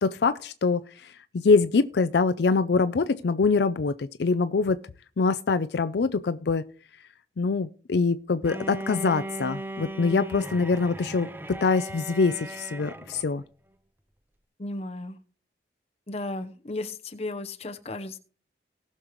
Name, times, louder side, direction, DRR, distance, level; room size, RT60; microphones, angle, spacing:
voice 1, 0.0-4.8 5.2-6.6 7.4-11.3 11.6-13.4, left 4 dB, 70° left, 11 dB, 0.5 m, -24 dB
Bowed string instrument, 8.4-13.3, right 1 dB, 10° right, 0.5 m, -37 dB
voice 2, 14.6-15.2 16.1-18.2, left 2 dB, 35° left, 7 dB, 0.9 m, -34 dB
19.0 x 6.6 x 3.1 m, 0.42 s
head